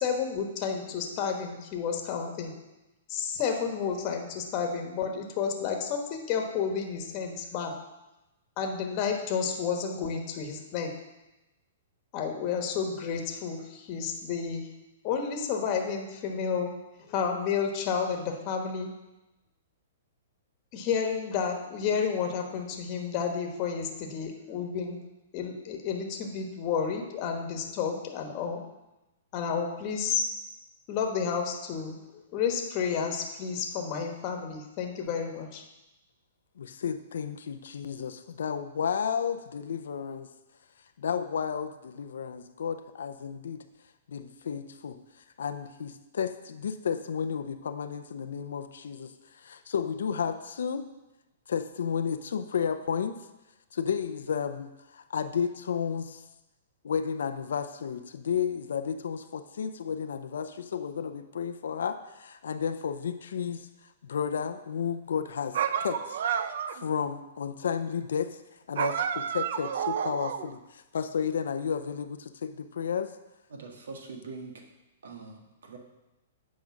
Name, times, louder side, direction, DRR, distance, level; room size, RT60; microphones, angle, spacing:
voice 1, 0.0-2.5 3.1-7.7 8.6-10.9 12.1-14.7 15.0-16.7 17.1-18.9 20.7-25.0 25.3-28.6 29.3-30.3 30.9-35.6, left 6 dB, 35° left, 3 dB, 1.3 m, -31 dB
voice 2, 36.6-40.3 41.0-43.6 44.1-45.0 45.4-50.8 51.5-53.2 53.7-56.2 56.8-66.2 66.7-68.4 68.7-73.1, left 7 dB, 80° left, 9 dB, 0.5 m, -32 dB
sound 1, 65.5-66.9 68.7-70.5, right 8 dB, 65° right, 0.5 m, -30 dB
voice 3, 73.5-74.5 75.0-75.8, right 4 dB, 85° right, 2 dB, 1.7 m, -43 dB
8.4 x 5.2 x 5.9 m, 1.0 s
hypercardioid pair, 150°, 0 cm